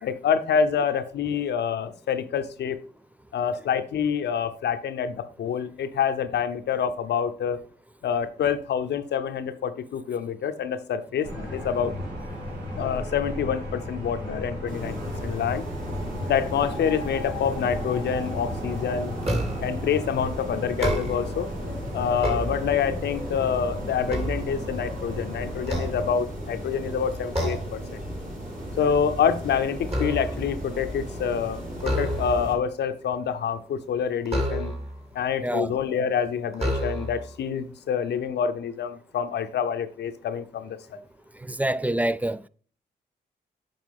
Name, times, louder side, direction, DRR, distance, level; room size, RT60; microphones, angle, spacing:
voice 1, 0.0-2.8 3.3-7.6 8.0-11.9 12.8-15.6 16.3-19.1 19.6-21.5 21.9-28.0 28.8-34.7 35.1-41.0, left 7 dB, 70° left, 0.7 m, -27 dB
sound 1, 11.2-26.1, left 1 dB, 80° right, 3.7 m, -35 dB
sound 2, 14.7-32.5, equal, 50° right, 3.8 m, -36 dB
sound 3, 19.2-19.8 20.7-21.4 22.0-23.1 23.6-25.1 25.6-26.6 27.3-27.8 28.2-28.5 28.8-30.6 31.8-32.6 34.3-35.0 35.8-35.9 36.5-37.3, equal, 35° right, 2.6 m, -30 dB
voice 2, 35.4-35.8 41.4-42.4, right 1 dB, 10° right, 0.3 m, -26 dB
7.7 x 5.4 x 3.6 m
supercardioid pair, 45°, 18 cm